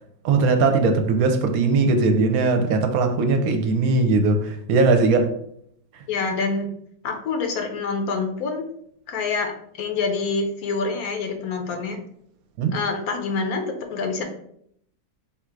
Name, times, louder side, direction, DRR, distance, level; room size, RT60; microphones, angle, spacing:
voice 1, 0.2-5.3 12.6-12.8, right 3 dB, 75° right, 1.0 m, -19 dB
voice 2, 6.1-6.7 7.0-8.6 9.1-9.5 9.8-12.0 12.7-14.2, left 4 dB, 75° left, 1.2 m, -26 dB
3.6 x 2.4 x 4.5 m
omnidirectional pair, 1.6 m